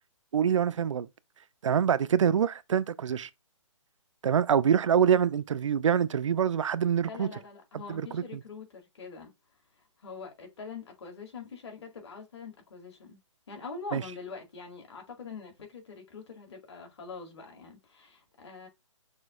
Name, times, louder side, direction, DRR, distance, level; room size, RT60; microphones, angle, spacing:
voice 1, 0.3-1.1 1.6-3.3 4.2-7.3 7.9-8.2 13.9-14.0, right 8 dB, 70° right, 0.4 m, -25 dB
voice 2, 7.1-9.3 10.0-13.2 13.5-18.7, left 5 dB, 55° left, 2.0 m, -44 dB
6.2 x 2.8 x 2.4 m
hypercardioid pair, 170°, 17 cm